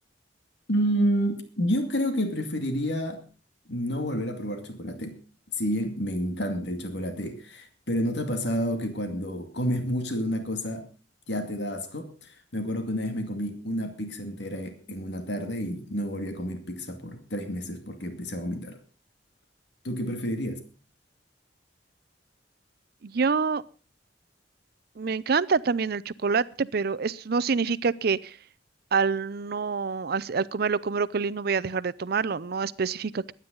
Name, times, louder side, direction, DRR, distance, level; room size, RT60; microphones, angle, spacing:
voice 1, 0.7-3.2 3.7-5.2 5.6-10.9 11.3-18.8 19.8-20.6, equal, 70° left, 6 dB, 2.3 m, -29 dB
voice 2, 23.0-23.6 25.0-28.4 28.9-33.3, right 5 dB, 60° right, 18 dB, 0.6 m, -26 dB
22.0 x 9.7 x 3.9 m, 0.36 s
head